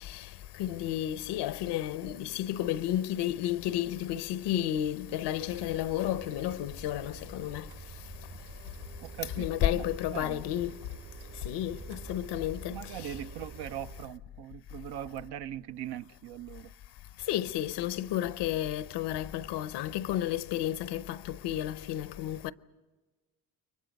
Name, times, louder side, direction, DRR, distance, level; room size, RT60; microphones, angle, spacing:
voice 1, 0.6-7.6 9.4-10.7 11.5-12.8 17.3-22.5, left 12 dB, 90° left, 0.8 m, -32 dB
sound 1, 5.3-14.1, right 5 dB, 50° right, 1.5 m, -47 dB
voice 2, 9.0-9.9 10.1-10.4 12.7-16.7, right 11 dB, 75° right, 0.8 m, -40 dB
29.5 x 23.0 x 5.3 m
cardioid pair, 85°, 40 cm